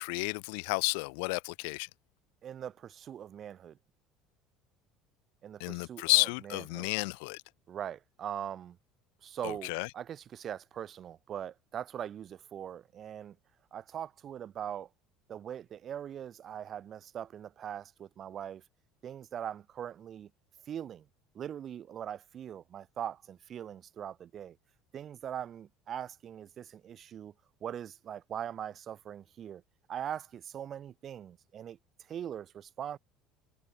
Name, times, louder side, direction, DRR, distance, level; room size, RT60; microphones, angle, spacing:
voice 1, 0.0-1.9 5.6-7.4 9.4-9.9, left 34 dB, 85° left, 0.7 m, -31 dB
voice 2, 2.4-3.8 5.4-6.9 7.7-8.8 9.2-13.4 13.7-14.9 15.3-18.6 19.0-20.3 20.7-21.1 21.4-24.6 24.9-27.3 27.6-29.6 29.9-31.8 32.1-33.0, right 9 dB, 45° right, 5.1 m, -41 dB
supercardioid pair, 105°, 0 cm